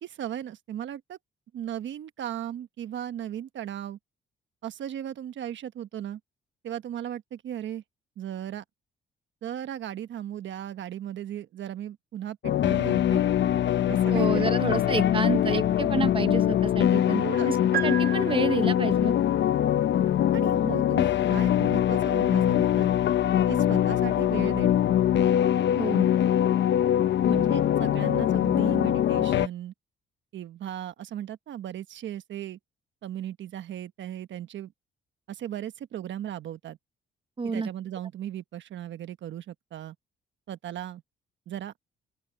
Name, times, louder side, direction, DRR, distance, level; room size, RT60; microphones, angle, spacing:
voice 1, 0.0-1.2 1.5-4.0 4.6-6.2 6.6-7.8 8.2-8.6 9.4-13.2 13.9-14.5 17.2-17.7 20.3-22.9 23.5-24.8 27.3-29.7 30.3-32.6 33.0-34.7 35.3-36.8 37.4-39.9 40.5-41.0 41.5-41.7, right 11 dB, 70° right, 1.2 m, -36 dB
sound 1, 12.4-29.5, left 11 dB, 65° left, 0.9 m, -23 dB
voice 2, 14.1-17.6 17.8-19.1 25.8-26.1 37.4-37.7, right 4 dB, 25° right, 1.2 m, -29 dB
sound 2, 17.7-19.0, right 11 dB, 50° right, 0.8 m, -33 dB
open air
cardioid pair, 90°, 20 cm